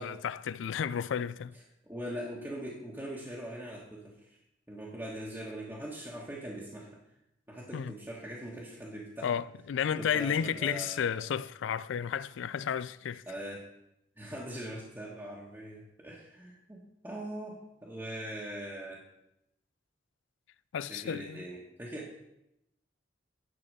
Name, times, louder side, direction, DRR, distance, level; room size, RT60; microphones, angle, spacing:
voice 1, 0.0-1.5 7.7-7.9 9.2-13.2 20.7-21.4, left 8 dB, 80° left, 0.3 m, -32 dB
voice 2, 1.9-4.4 4.7-6.9 7.5-9.3 9.9-11.4 13.3-13.6 14.2-19.0 20.9-22.2, right 1 dB, 10° right, 1.2 m, -41 dB
10.5 x 4.2 x 6.6 m
head